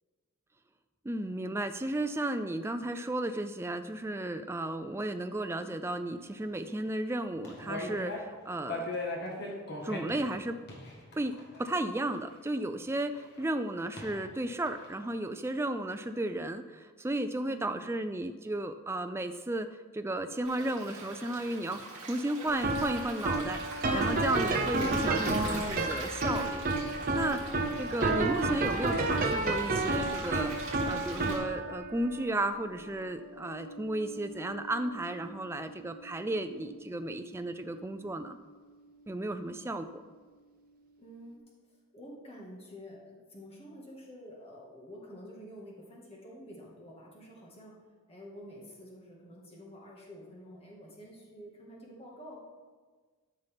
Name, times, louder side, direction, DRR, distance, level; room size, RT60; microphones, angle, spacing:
voice 1, 1.0-8.9 9.8-10.6 11.2-19.7 19.9-26.6 27.1-27.4 27.8-30.5 30.9-38.4 39.1-40.0, right 1 dB, 10° right, 8 dB, 0.3 m, -34 dB
sound 1, 7.4-8.4 8.7-12.3 13.4-13.5 14.0-14.3 14.6-15.0, left 2 dB, 45° left, 1.5 m, -39 dB
voice 2, 17.4-18.0 27.2-27.5 41.0-41.4 41.9-47.7 48.1-52.4, equal, 25° left, -3 dB, 1.7 m, -49 dB
Stream, 20.4-31.4, right 3 dB, 60° right, 2.8 m, -43 dB
sound 2, 22.5-39.7, right 2 dB, 40° right, 0.8 m, -33 dB
12.5 x 5.6 x 3.5 m, 1.4 s
head